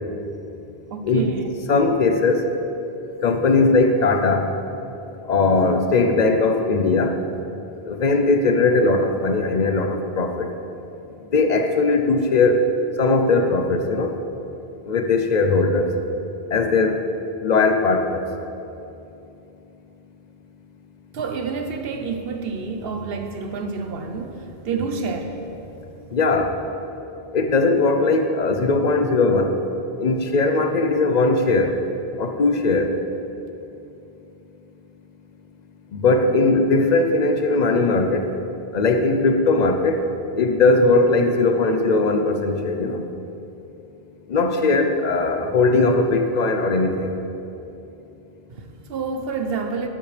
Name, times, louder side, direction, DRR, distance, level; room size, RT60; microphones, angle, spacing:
voice 1, 0.9-1.4 21.1-25.4 48.5-49.9, right 5 dB, 70° right, 5 dB, 0.9 m, -28 dB
voice 2, 1.7-2.5 3.2-4.5 5.3-7.1 7.9-10.5 11.3-12.7 13.0-14.1 14.9-15.9 16.5-17.0 17.4-18.2 26.1-26.5 27.3-29.6 30.0-31.7 32.2-33.0 35.9-38.3 38.7-40.1 40.3-43.0 44.3-47.1, left 3 dB, 50° left, 6 dB, 0.7 m, -19 dB
11.5 x 7.8 x 3.3 m, 2.9 s
omnidirectional pair, 1.1 m